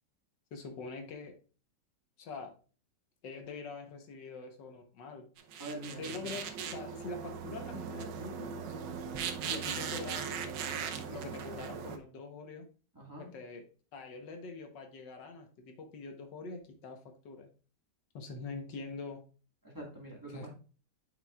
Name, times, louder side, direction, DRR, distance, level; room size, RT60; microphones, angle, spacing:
voice 1, 0.5-1.4 2.2-2.5 3.2-5.3 6.0-8.5 9.5-10.4 11.1-12.7 13.2-13.6 13.9-17.5 18.1-19.2 20.3-20.5, left 3 dB, 75° left, 5 dB, 1.7 m, -44 dB
sound 1, 5.4-12.0, right 7 dB, 80° right, 1.4 m, -39 dB
voice 2, 5.6-6.3 12.9-13.3 19.6-20.5, right 1 dB, 10° right, -1 dB, 1.5 m, -44 dB
9.2 x 5.8 x 2.3 m, 0.37 s
omnidirectional pair, 1.9 m